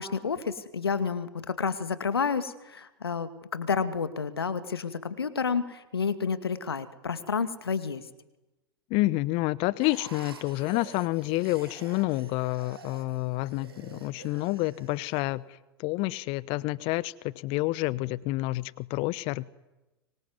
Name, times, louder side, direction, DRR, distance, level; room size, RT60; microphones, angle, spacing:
voice 1, 0.0-8.0, left 5 dB, 80° left, 12 dB, 2.3 m, -30 dB
voice 2, 8.9-15.4 15.8-19.4, left 20 dB, 45° left, 21 dB, 1.0 m, -29 dB
sound 1, 9.8-15.2, right 5 dB, 80° right, 4.2 m, -48 dB
24.5 x 24.0 x 9.6 m, 1.0 s
figure-of-eight pair, 90°, 13 cm